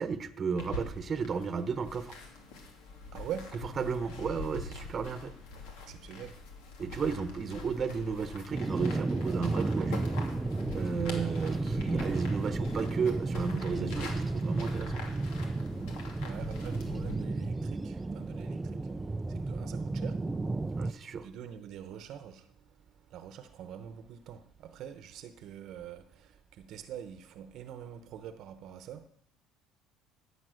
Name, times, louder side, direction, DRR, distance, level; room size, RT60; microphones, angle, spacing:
voice 1, 0.0-2.2 3.5-5.3 6.8-10.1 10.7-15.0 20.8-21.3, right 5 dB, 30° right, 1.0 m, -33 dB
sound 1, 0.6-17.1, left 3 dB, 85° left, 2.7 m, -44 dB
voice 2, 3.1-3.6 5.9-6.4 16.2-18.9 19.3-20.4 20.8-29.1, right 9 dB, 60° right, 0.9 m, -45 dB
sound 2, 8.5-20.9, right 2 dB, 15° right, 0.4 m, -33 dB
14.0 x 8.5 x 6.4 m
cardioid pair, 125°, 0 cm